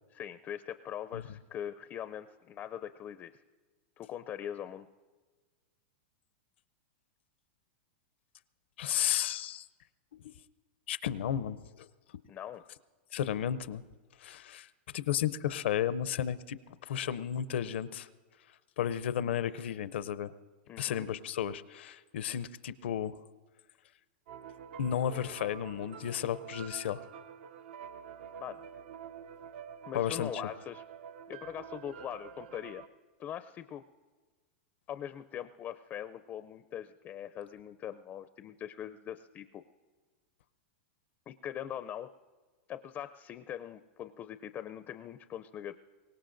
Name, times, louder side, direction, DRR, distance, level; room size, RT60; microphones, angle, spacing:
voice 1, 0.1-3.4 4.0-4.9 12.3-12.6 20.7-21.0 28.4-28.6 29.9-30.8 31.3-32.9 33.2-33.8 34.9-39.6 41.3-42.1 42.7-45.8, left 10 dB, 30° left, 12 dB, 0.4 m, -42 dB
voice 2, 8.8-9.7 10.9-11.9 13.1-13.8 14.2-14.7 14.9-16.6 16.8-18.1 18.8-20.3 20.8-23.2 24.8-27.0 29.9-30.3, left 10 dB, 75° left, 14 dB, 0.6 m, -33 dB
sound 1, 24.3-32.9, right 8 dB, 65° right, 0.6 m, -47 dB
24.0 x 19.0 x 2.6 m, 1.4 s
hypercardioid pair, 130°, 6 cm